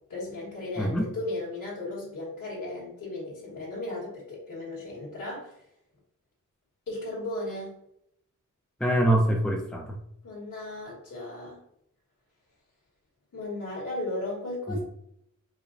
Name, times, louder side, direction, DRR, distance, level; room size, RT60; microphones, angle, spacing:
voice 1, 0.1-5.6 6.9-7.7 10.2-11.6 13.3-14.8, left 2 dB, 75° left, -9 dB, 1.5 m, -35 dB
voice 2, 8.8-10.0 14.7-14.8, right 1 dB, ahead, 1 dB, 0.5 m, -24 dB
4.8 x 2.2 x 2.5 m, 0.74 s
wide cardioid pair, 95°, 32 cm